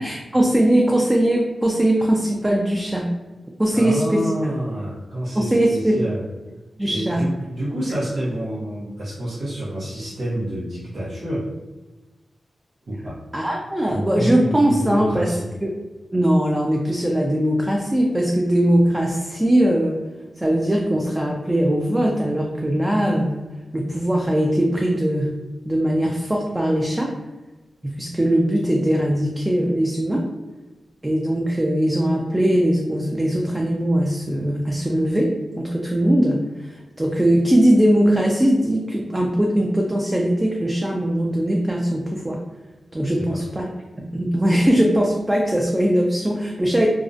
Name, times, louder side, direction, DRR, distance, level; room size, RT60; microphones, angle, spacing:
voice 1, 0.0-3.1 3.6-4.5 5.3-6.0 6.8-7.3 13.3-15.4 15.6-15.7 16.1-20.0 20.4-23.4 23.7-25.3 25.7-27.1 27.8-30.3 31.0-42.4 42.9-43.7 44.0-46.9, right 1 dB, 15° right, -1 dB, 0.3 m, -20 dB
voice 2, 3.7-6.2 6.9-11.5 12.9-13.2 13.9-15.5 43.2-43.4, right 1 dB, 75° right, -8 dB, 0.7 m, -28 dB
2.3 x 2.0 x 2.6 m, 1.1 s
wide cardioid pair, 75°, 0 cm